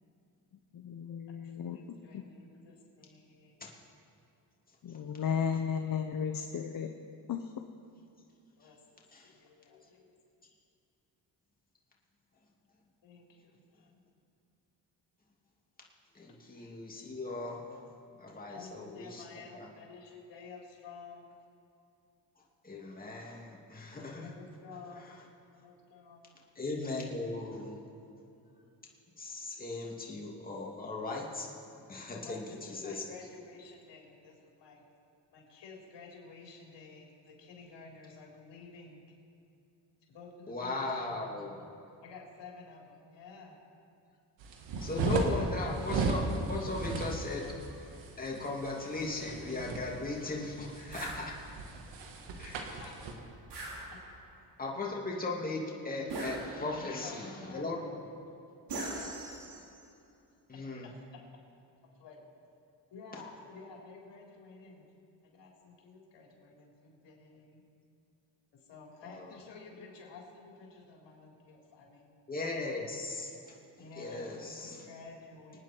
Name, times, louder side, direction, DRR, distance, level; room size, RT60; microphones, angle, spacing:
voice 1, 0.7-1.8 2.1-2.2 4.8-6.9 7.3-7.5, left 7 dB, 50° left, 5 dB, 0.9 m, -34 dB
voice 2, 1.6-3.6 5.8-6.2 8.6-10.1 13.0-14.0 18.5-21.3 24.2-25.1 25.5-26.3 32.2-34.8 35.3-39.1 40.1-41.7 42.0-43.6 45.3-45.4 52.8-52.9 56.7-57.9 62.0-62.2 62.9-64.9 65.2-67.6 68.7-72.1 73.8-75.6, left 4 dB, 75° left, -2 dB, 4.0 m, -51 dB
voice 3, 16.1-17.8 18.2-19.2 19.5-19.7 22.6-24.3 25.0-25.2 26.5-27.8 29.2-31.5 31.9-33.1 40.5-41.6 44.8-47.6 47.8-51.4 52.4-52.8 54.6-58.0 60.5-60.9 69.0-69.4 72.3-74.9, left 2 dB, 20° left, -2 dB, 2.6 m, -38 dB
sound 1, 44.4-53.1, right 3 dB, 90° right, 1.8 m, -36 dB
sound 2, 50.9-51.2 53.5-54.3 56.1-56.9 58.7-59.8, right 2 dB, 70° right, 4.3 m, -40 dB
25.0 x 9.5 x 4.5 m, 2.7 s
cardioid pair, 100°, 43 cm